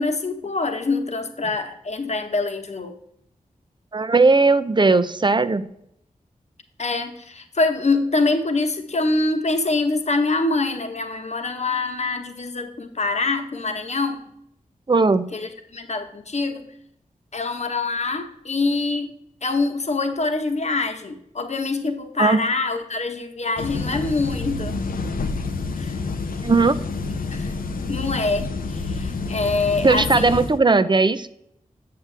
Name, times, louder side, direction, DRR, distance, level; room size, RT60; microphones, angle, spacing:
voice 1, 0.0-2.9 6.8-14.2 15.3-16.7 17.3-19.2 19.4-24.8 25.8-26.0 27.3-27.5 27.9-30.4, left 3 dB, 50° left, 6 dB, 1.1 m, -25 dB
voice 2, 3.9-5.7 14.9-15.3 22.2-22.4 26.4-26.8 29.8-31.3, right 3 dB, 35° right, 12 dB, 0.6 m, -17 dB
sound 1, 23.6-30.6, left 3 dB, 90° left, 0.6 m, -28 dB
7.7 x 7.5 x 3.3 m, 0.74 s
cardioid pair, 50°, 14 cm